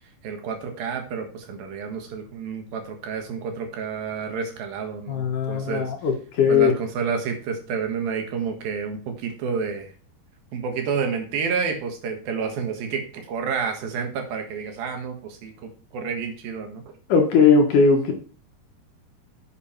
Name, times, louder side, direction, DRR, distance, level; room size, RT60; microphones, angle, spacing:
voice 1, 0.2-5.9 6.5-9.9 10.5-16.8, right 6 dB, 70° right, 5 dB, 3.3 m, -29 dB
voice 2, 5.1-6.7 17.1-18.1, left 5 dB, 60° left, 3 dB, 2.6 m, -19 dB
9.5 x 7.6 x 4.5 m, 0.39 s
omnidirectional pair, 4.5 m